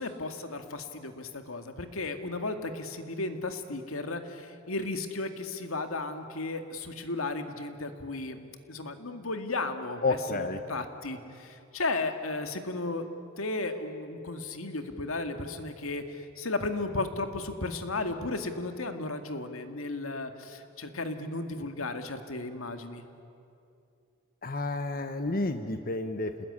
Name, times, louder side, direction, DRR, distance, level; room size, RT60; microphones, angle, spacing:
voice 1, 0.0-8.4 8.7-10.2 10.7-13.1 13.4-23.0, left 2 dB, 80° left, 7 dB, 2.1 m, -34 dB
voice 2, 10.0-10.6 24.4-26.5, left 2 dB, 45° left, 8 dB, 1.0 m, -30 dB
28.5 x 20.0 x 9.8 m, 2.6 s
head